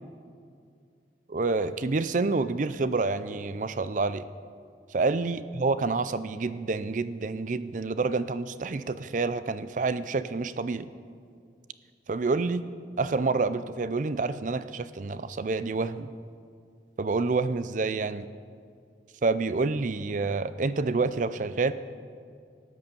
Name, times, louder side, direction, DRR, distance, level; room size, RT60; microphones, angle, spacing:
voice 1, 1.3-4.2 4.9-10.9 12.1-12.7 13.0-16.1 17.0-18.3 19.2-21.7, right 3 dB, 45° right, 14 dB, 0.4 m, -28 dB
13.0 x 9.5 x 6.9 m, 2.3 s
head